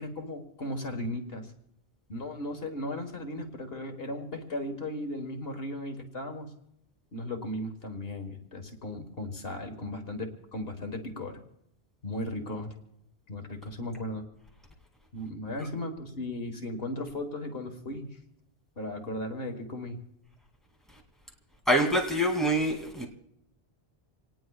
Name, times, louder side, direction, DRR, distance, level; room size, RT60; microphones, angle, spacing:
voice 1, 0.0-1.5 2.1-6.5 7.1-11.4 12.0-12.8 13.3-14.3 15.1-18.2 18.8-20.0, left 1 dB, 70° left, 4 dB, 1.8 m, -36 dB
voice 2, 21.7-23.1, equal, ahead, -1 dB, 2.6 m, -25 dB
27.0 x 19.0 x 2.4 m, 0.79 s
omnidirectional pair, 1.0 m